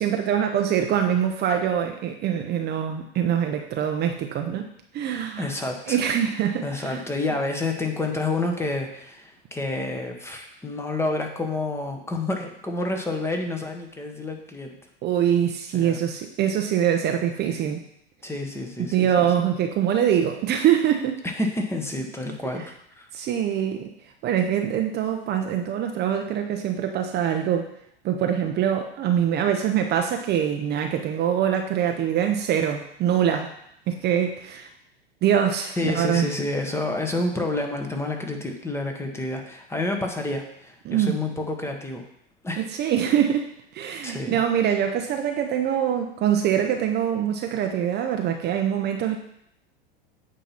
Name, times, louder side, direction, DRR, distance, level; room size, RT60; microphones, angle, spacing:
voice 1, 0.0-4.7 4.9-5.5 5.9-7.0 15.0-17.8 18.8-21.2 23.1-23.9 24.2-27.7 28.0-33.5 33.9-34.7 35.2-36.3 40.9-41.2 42.6-49.2, right 9 dB, 35° right, 5 dB, 0.7 m, -24 dB
voice 2, 5.4-6.0 6.6-14.8 15.7-16.0 18.2-19.0 19.2-19.3 21.2-23.1 35.8-42.0 42.4-42.6 44.0-44.4, left 2 dB, 10° left, 3 dB, 1.0 m, -29 dB
8.6 x 2.9 x 5.7 m, 0.74 s
hypercardioid pair, 100°, 29 cm